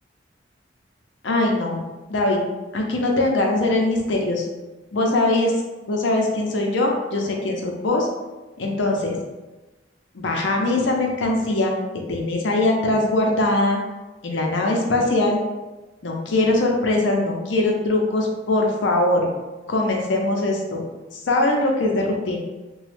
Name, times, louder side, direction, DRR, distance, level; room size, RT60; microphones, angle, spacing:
voice 1, 1.2-1.8 2.1-2.4 2.7-4.5 4.9-5.5 5.9-8.1 8.6-9.2 10.1-11.8 12.1-13.8 14.2-15.4 16.0-19.3 19.7-20.8 21.2-22.4, left 2 dB, 85° left, 0 dB, 0.6 m, -21 dB
3.0 x 2.2 x 3.2 m, 1.1 s
head